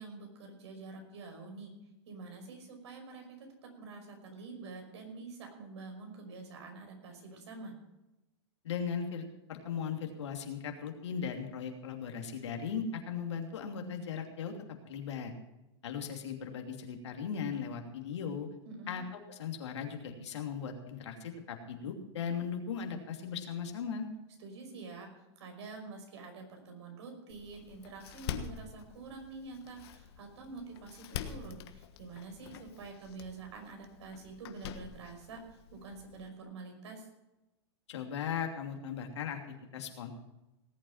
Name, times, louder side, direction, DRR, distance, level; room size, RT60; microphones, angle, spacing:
voice 1, 0.0-1.7 2.1-7.8 18.6-19.0 24.4-25.1 25.4-37.1, right 3 dB, 80° right, 3 dB, 5.5 m, -47 dB
voice 2, 8.6-14.5 14.9-15.3 15.8-18.5 18.9-19.0 19.3-24.1 37.9-40.1, left 7 dB, 90° left, 3 dB, 2.9 m, -38 dB
Door, 27.3-36.3, left 9 dB, 65° left, 1.4 m, -46 dB
18.5 x 8.8 x 5.8 m, 0.97 s
supercardioid pair, 140°, 14 cm